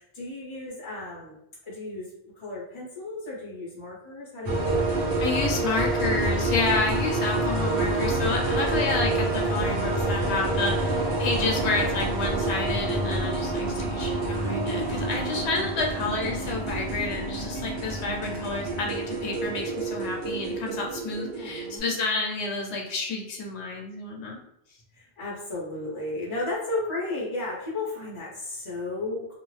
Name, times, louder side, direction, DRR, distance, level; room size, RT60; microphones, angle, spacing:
voice 1, 0.0-1.4 1.6-5.0 7.7-8.3 14.0-14.8 21.4-22.0 24.9-29.3, left 2 dB, 35° left, -5 dB, 0.5 m, -35 dB
sound 1, 4.4-21.8, right 2 dB, 60° right, 1.0 m, -27 dB
voice 2, 5.2-24.4, left 3 dB, 80° left, 0 dB, 0.9 m, -30 dB
2.4 x 2.1 x 3.1 m, 0.79 s
omnidirectional pair, 1.1 m